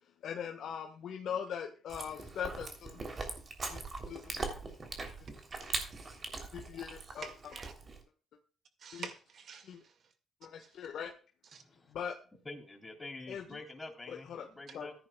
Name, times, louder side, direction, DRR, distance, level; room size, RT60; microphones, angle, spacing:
voice 1, 0.2-3.0 3.7-4.2 4.5-4.6 6.4-7.5 8.9-9.1 9.6-9.8 10.4-11.1 11.9-12.1 13.3-13.6 14.1-14.5 14.7-14.9, left 8 dB, 70° left, 2 dB, 1.4 m, -41 dB
Chewing mastication, 1.9-8.0, right 3 dB, 40° right, 3.2 m, -41 dB
voice 2, 5.5-6.0 7.1-7.7 8.8-9.7 11.5-11.6 14.7-14.8, right 6 dB, 60° right, 9 dB, 2.0 m, -48 dB
voice 3, 11.5-11.9 12.4-14.9, left 2 dB, 15° left, 2 dB, 3.5 m, -47 dB
14.5 x 10.5 x 2.3 m, 0.38 s
cardioid pair, 90°, 0 cm